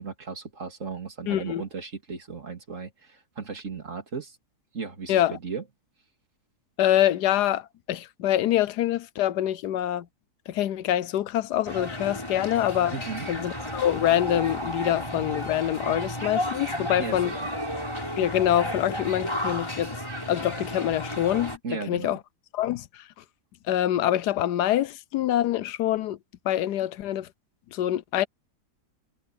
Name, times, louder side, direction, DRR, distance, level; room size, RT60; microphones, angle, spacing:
voice 1, 0.0-4.4 4.7-5.6 12.9-13.3 17.0-17.5 21.6-22.2, right 5 dB, 45° right, 2.9 m, -36 dB
voice 2, 1.3-1.6 5.1-5.4 6.8-10.1 10.5-13.0 13.3-17.3 18.2-20.0 20.3-21.6 21.9-22.2 22.5-23.0 23.7-26.2 26.4-27.3 27.7-28.3, left 12 dB, 75° left, 1.2 m, -25 dB
sound 1, 11.6-21.6, equal, 15° left, 5.2 m, -33 dB
omnidirectional pair, 1.8 m